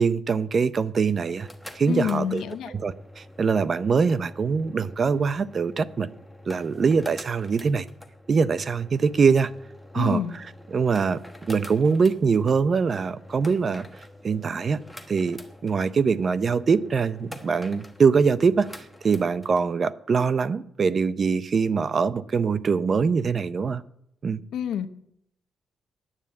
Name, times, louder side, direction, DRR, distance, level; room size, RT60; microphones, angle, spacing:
voice 1, 0.0-1.5 1.7-6.1 6.5-7.9 8.3-9.5 9.9-10.5 10.7-13.9 14.2-14.8 15.1-18.7 19.0-23.8 24.2-24.4, right 5 dB, 40° right, 16 dB, 0.5 m, -23 dB
sound 1, 1.1-19.7, left 1 dB, ahead, 1.2 m, -46 dB
voice 2, 1.9-2.7 9.9-10.3 24.5-24.9, left 9 dB, 85° left, 9 dB, 0.8 m, -27 dB
9.8 x 8.8 x 8.3 m, 0.74 s
cardioid pair, 125°, 0 cm